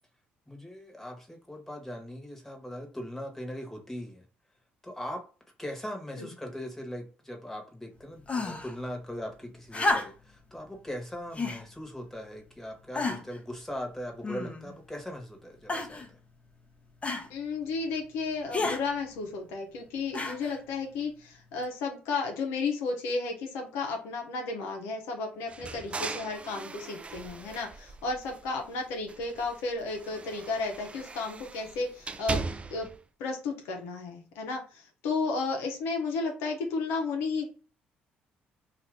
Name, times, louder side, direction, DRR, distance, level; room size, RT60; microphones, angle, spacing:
voice 1, 0.5-4.2 4.8-5.2 5.6-16.0, equal, 5° left, 2 dB, 1.2 m, -40 dB
sound 1, 8.3-8.8 9.7-10.4 11.3-11.7 12.4-12.5 12.9-13.4 14.2-14.8 15.7-16.1 17.0-17.3 18.5-18.8 20.1-20.6 21.6-21.7, left 2 dB, 30° left, 0.7 m, -31 dB
voice 2, 17.3-32.4 32.7-32.9 33.2-37.5, left 4 dB, 80° left, 2 dB, 0.7 m, -33 dB
sound 2, 25.5-28.7 29.0-33.0, right 3 dB, 25° right, 0.4 m, -39 dB
2.6 x 2.5 x 3.3 m, 0.36 s
hypercardioid pair, 55°, 4 cm